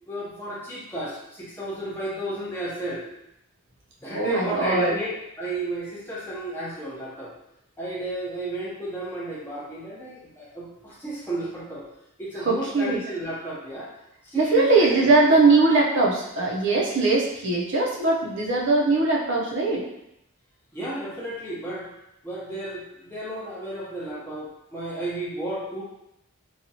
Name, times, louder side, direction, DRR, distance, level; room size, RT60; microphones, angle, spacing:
voice 1, 0.0-3.0 4.0-5.1 5.4-7.3 7.8-11.8 12.2-13.9 14.2-15.1 20.7-21.9 22.2-25.8, right 1 dB, 10° left, -7 dB, 0.7 m, -32 dB
voice 2, 4.1-5.0 12.5-13.0 14.3-19.8, right 3 dB, 60° right, -3 dB, 0.6 m, -21 dB
2.9 x 2.3 x 2.7 m, 0.83 s
head